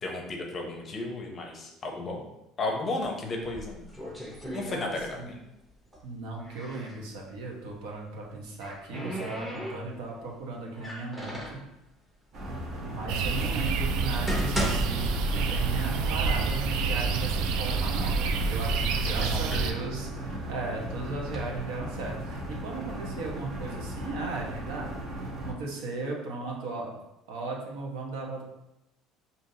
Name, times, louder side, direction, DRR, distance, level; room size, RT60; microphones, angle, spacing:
voice 1, 0.0-2.2 2.6-3.8 4.5-5.4 19.2-19.7, left 2 dB, 30° left, 2 dB, 0.6 m, -34 dB
sound 1, 3.4-5.3 5.6-7.0 8.1-10.2 10.7-11.7 12.4-12.5 13.2-13.3 13.9-15.9 16.2-16.3 17.1-17.2 17.5-18.2 18.7-20.4 21.0-21.4, equal, 5° right, 0.8 m, -37 dB
voice 2, 4.7-5.3 6.0-11.6 12.8-25.0 25.4-26.9 27.3-28.4, right 3 dB, 85° right, -1 dB, 1.0 m, -37 dB
sound 2, 12.3-25.5, right 1 dB, 45° right, 0.7 m, -37 dB
sound 3, 13.1-19.7, right 4 dB, 70° right, 0.3 m, -28 dB
5.2 x 2.7 x 2.7 m, 0.91 s
cardioid pair, 150°, 0 cm